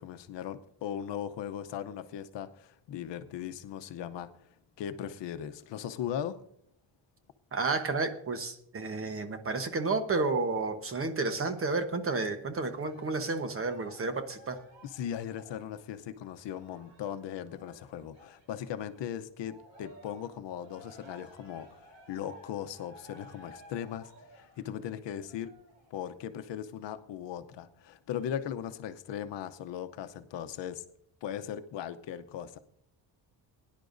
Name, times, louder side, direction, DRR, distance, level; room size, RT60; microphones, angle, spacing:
voice 1, 0.0-4.3 4.8-6.4 14.9-25.5 25.9-30.8 31.2-32.6, left 9 dB, 75° left, 10 dB, 0.8 m, -38 dB
voice 2, 7.5-14.6, right 3 dB, 30° right, 8 dB, 1.1 m, -31 dB
Cheering, 12.7-19.0 19.4-26.0 26.6-26.7, equal, 65° right, 4.9 m, -56 dB
22.0 x 10.5 x 2.6 m, 0.69 s
cardioid pair, 165°, 44 cm